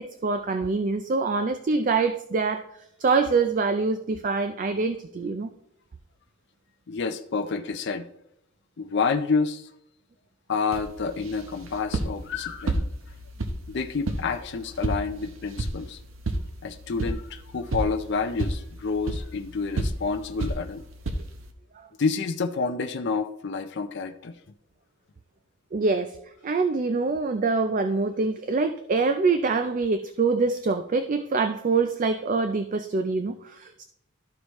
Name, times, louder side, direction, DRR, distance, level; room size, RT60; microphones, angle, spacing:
voice 1, 0.0-2.7 3.0-5.5 21.8-21.9 25.7-26.2 26.4-33.8, right 4 dB, 35° right, 9 dB, 0.4 m, -25 dB
voice 2, 6.9-8.1 8.8-9.7 10.5-12.8 13.7-16.0 16.6-20.8 22.0-24.3, left 4 dB, 50° left, 5 dB, 0.5 m, -28 dB
sound 1, 10.7-21.5, right 1 dB, 60° right, 0.8 m, -32 dB
13.0 x 4.8 x 3.1 m, 0.77 s
head